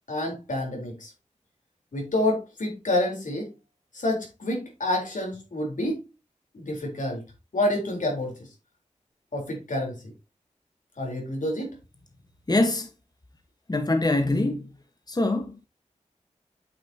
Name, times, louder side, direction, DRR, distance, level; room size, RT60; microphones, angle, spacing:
voice 1, 0.1-1.1 1.9-3.5 3.9-6.0 6.5-7.2 7.5-8.4 9.3-10.0 11.0-11.7, left 1 dB, 80° left, 4.0 m, -28 dB
voice 2, 12.5-12.9 13.7-14.7 15.1-15.6, left 2 dB, 30° left, 1.3 m, -24 dB
8.7 x 7.3 x 2.8 m
cardioid pair, 45°, 13 cm